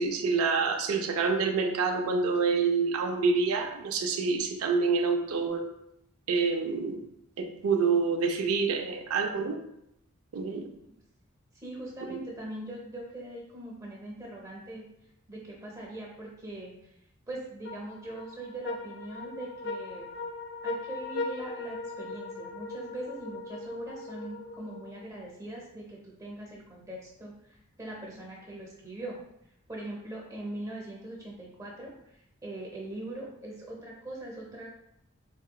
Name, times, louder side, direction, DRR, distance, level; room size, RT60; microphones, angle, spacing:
voice 1, 0.0-5.7 6.3-7.0 7.4-9.6 10.3-10.7 12.1-12.2, right 4 dB, 90° right, 5 dB, 0.4 m, -27 dB
voice 2, 11.6-14.8 15.3-16.7 17.3-20.0 20.6-27.3 27.8-29.2 29.7-31.9 32.4-34.7, right 1 dB, 15° right, -3 dB, 0.6 m, -41 dB
sound 1, 17.6-25.2, left 3 dB, 50° left, 0.4 m, -39 dB
4.0 x 2.9 x 2.3 m, 0.80 s
head